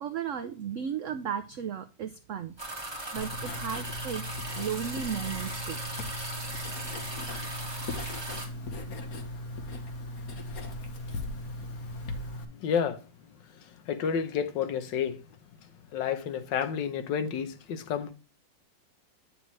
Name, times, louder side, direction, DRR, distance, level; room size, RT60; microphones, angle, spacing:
voice 1, 0.0-2.5 3.1-4.2 4.5-5.8, right 8 dB, 80° right, 0.6 m, -35 dB
sound 1, 2.6-8.5, right 1 dB, 15° right, 2.0 m, -38 dB
Writing, 3.2-12.5, left 1 dB, 55° left, 1.5 m, -38 dB
voice 2, 12.6-13.0 13.9-15.2 15.9-18.1, left 7 dB, 80° left, 1.5 m, -30 dB
9.0 x 6.6 x 3.0 m
omnidirectional pair, 1.9 m